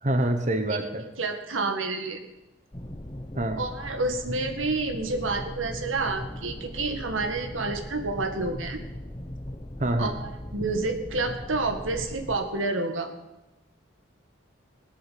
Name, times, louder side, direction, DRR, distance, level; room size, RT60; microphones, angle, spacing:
voice 1, 0.0-1.0 3.4-3.6 9.8-10.2, right 1 dB, 35° right, 7 dB, 1.1 m, -26 dB
voice 2, 1.2-2.2 3.6-8.8 10.0-13.1, right 3 dB, 90° right, 6 dB, 2.0 m, -29 dB
sound 1, 2.7-12.4, left 1 dB, 20° left, 1.0 m, -39 dB
20.0 x 8.6 x 7.7 m, 1.0 s
head